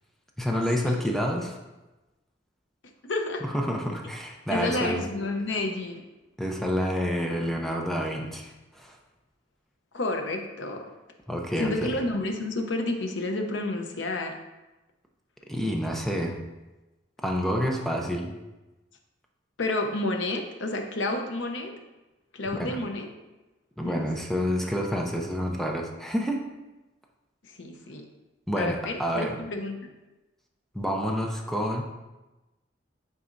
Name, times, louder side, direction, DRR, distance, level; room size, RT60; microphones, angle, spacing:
voice 1, 0.4-1.6 3.4-5.0 6.4-9.0 11.3-12.0 15.5-16.4 17.2-18.4 22.6-22.8 23.8-26.5 28.5-29.4 30.7-31.8, equal, ahead, 1 dB, 0.6 m, -28 dB
voice 2, 3.0-3.4 4.5-6.0 9.9-10.9 11.6-14.4 19.6-21.7 22.3-23.1 23.8-24.1 27.4-28.1 28.6-29.8, left 2 dB, 90° left, 4 dB, 0.7 m, -30 dB
8.9 x 4.1 x 2.6 m, 1.1 s
head